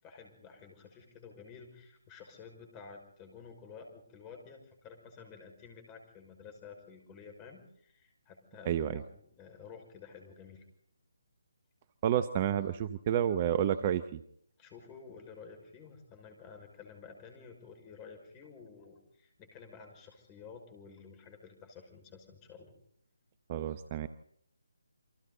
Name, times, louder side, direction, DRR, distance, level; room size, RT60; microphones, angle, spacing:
voice 1, 0.0-10.6 14.6-22.7, left 5 dB, 20° left, 4 dB, 5.8 m, -52 dB
voice 2, 8.7-9.0 12.0-14.2 23.5-24.1, right 10 dB, 30° right, 13 dB, 0.9 m, -30 dB
29.0 x 25.0 x 4.1 m, 0.70 s
figure-of-eight pair, 150°, 0 cm